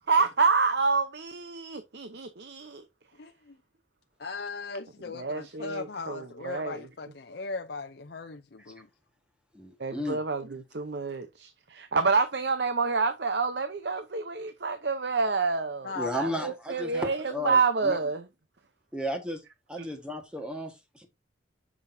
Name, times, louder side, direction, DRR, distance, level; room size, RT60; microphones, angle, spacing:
voice 1, 0.1-2.8 5.1-6.9 9.8-18.2 19.8-19.9, right 4 dB, 55° right, 0.7 m, -28 dB
voice 2, 3.2-3.6 4.2-8.9 15.8-16.5, left 4 dB, 55° left, 0.5 m, -38 dB
voice 3, 9.5-10.2 15.9-18.0 18.9-19.4 19.7-21.1, equal, 5° right, 1.4 m, -34 dB
8.3 x 6.3 x 2.7 m
head